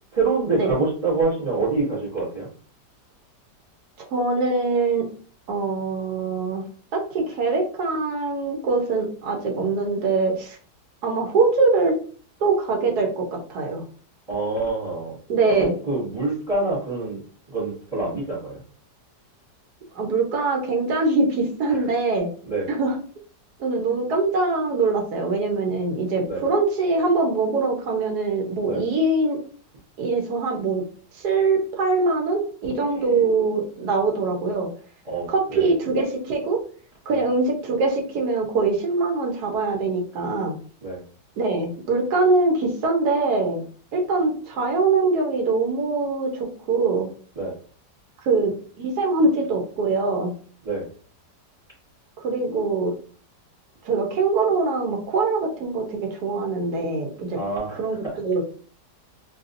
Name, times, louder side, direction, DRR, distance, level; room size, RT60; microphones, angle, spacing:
voice 1, 0.1-2.5 14.3-15.2 15.6-17.2 17.5-18.6 21.7-21.8 22.5-22.7 26.3-26.4 28.6-28.8 32.8-33.2 35.0-35.7 37.1-37.2 40.8-41.0 47.4-47.5 50.6-50.9 57.3-58.1, right 3 dB, 25° right, -5 dB, 0.9 m, -26 dB
voice 2, 4.1-5.1 5.5-6.6 6.9-10.6 11.0-11.9 12.4-13.8 15.3-15.8 19.9-22.3 22.7-23.0 23.6-29.4 30.0-30.8 31.1-34.7 35.3-36.6 37.1-40.5 41.4-43.6 43.9-47.1 48.2-50.3 52.2-52.9 53.8-57.4 57.8-58.4, right 3 dB, 70° right, 1 dB, 1.3 m, -23 dB
3.3 x 2.7 x 2.5 m, 0.43 s
omnidirectional pair, 1.8 m